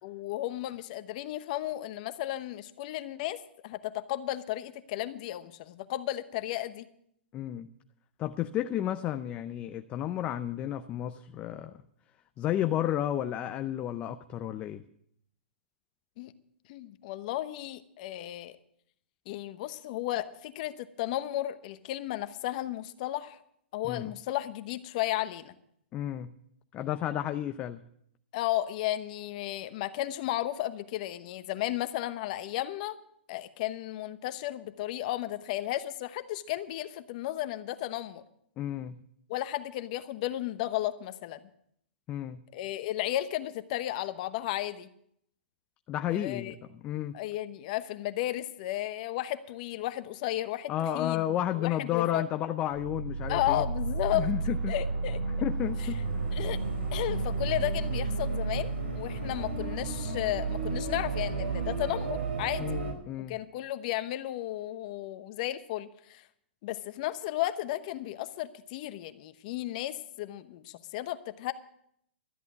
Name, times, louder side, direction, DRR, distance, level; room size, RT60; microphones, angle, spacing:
voice 1, 0.0-3.4 3.6-6.9 16.2-16.3 16.7-18.6 19.3-23.4 23.7-25.5 28.3-33.0 33.3-38.2 39.3-41.4 42.5-44.9 46.1-46.5 47.1-51.2 51.5-52.2 53.3-54.3 54.7-55.5 56.3-56.6 56.9-62.8 63.3-66.2 66.6-71.5, left 14 dB, 40° left, 12 dB, 0.9 m, -34 dB
voice 2, 7.3-7.7 8.2-11.8 12.4-14.8 23.8-24.1 25.9-26.3 26.7-27.8 38.6-39.0 42.1-42.4 45.9-47.2 50.7-53.6 54.1-54.7 55.4-56.3 62.6-63.4, left 12 dB, 20° left, 9 dB, 0.5 m, -32 dB
sound 1, 52.7-62.9, right 4 dB, 90° right, 4.9 m, -32 dB
13.0 x 8.4 x 8.3 m, 0.71 s
hypercardioid pair, 155°, 6 cm